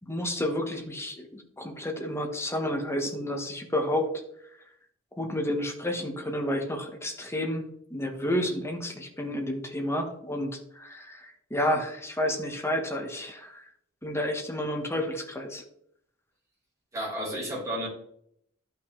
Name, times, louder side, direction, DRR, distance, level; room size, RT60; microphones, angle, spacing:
voice 1, 0.0-4.1 5.1-13.6 14.0-15.6, left 1 dB, 15° left, 2 dB, 1.5 m, -30 dB
voice 2, 16.9-17.9, equal, 15° right, -6 dB, 4.1 m, -32 dB
12.0 x 5.8 x 3.3 m, 0.69 s
head